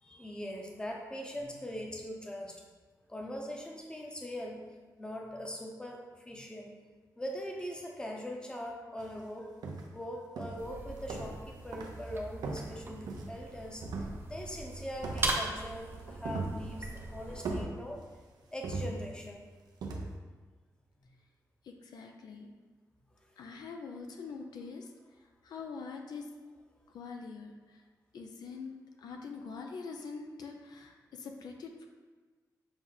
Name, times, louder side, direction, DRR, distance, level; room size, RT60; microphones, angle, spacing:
voice 1, 0.0-2.6 3.1-4.6 5.0-6.8 7.2-9.5 9.9-18.0 18.5-19.4, equal, 15° left, 0 dB, 0.7 m, -41 dB
sound 1, 9.0-9.2 9.6-10.0 10.4-11.5 11.7-12.0 12.4-13.5 13.8-14.5 15.0-15.6 15.9-17.0 17.4-18.2 18.6-19.3 19.8-20.1, right 3 dB, 90° right, 0.5 m, -39 dB
sound 2, 10.6-17.6, right 2 dB, 35° right, 0.5 m, -40 dB
voice 2, 21.6-22.5 23.4-24.9 25.4-26.3 26.9-27.8 28.1-31.9, left 4 dB, 90° left, 3 dB, 0.4 m, -44 dB
6.0 x 2.0 x 3.8 m, 1.4 s
cardioid pair, 85°, 7 cm